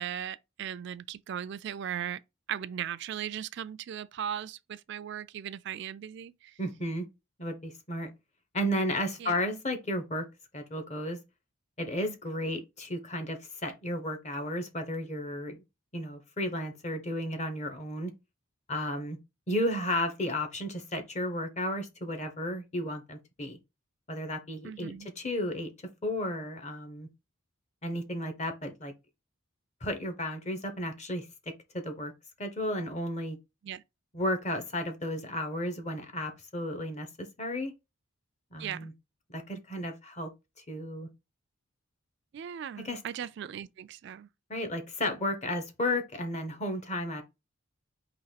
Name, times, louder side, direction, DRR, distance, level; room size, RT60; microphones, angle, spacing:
voice 1, 0.0-2.2 2.5-6.5 9.2-9.4 24.6-25.1 33.6-33.8 38.6-38.9 42.3-44.3, right 9 dB, 55° right, 0.3 m, -38 dB
voice 2, 6.6-7.1 7.4-8.1 8.5-10.2 10.5-11.2 11.8-15.6 15.9-18.1 18.7-19.2 19.5-23.6 24.1-25.7 26.0-27.1 27.8-28.9 29.8-31.3 31.7-32.1 32.4-33.4 34.1-37.7 38.5-38.9 39.3-40.3 40.7-41.1 42.8-43.0 44.5-47.2, left 1 dB, 35° left, 1.0 m, -33 dB
4.0 x 2.9 x 4.0 m
head